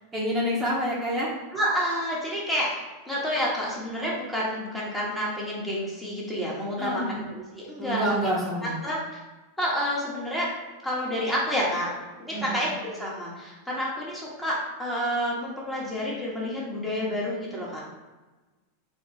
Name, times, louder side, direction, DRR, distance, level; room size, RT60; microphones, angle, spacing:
voice 1, 0.1-1.3 6.8-7.2 7.8-8.8 12.3-12.6, equal, 20° right, -6 dB, 1.0 m, -27 dB
voice 2, 1.5-2.7 3.1-8.0 8.6-9.0 9.6-10.5 10.8-11.9 12.2-17.8, equal, 5° left, -6 dB, 1.2 m, -29 dB
3.4 x 2.3 x 4.1 m, 1.2 s
hypercardioid pair, 110°, 0 cm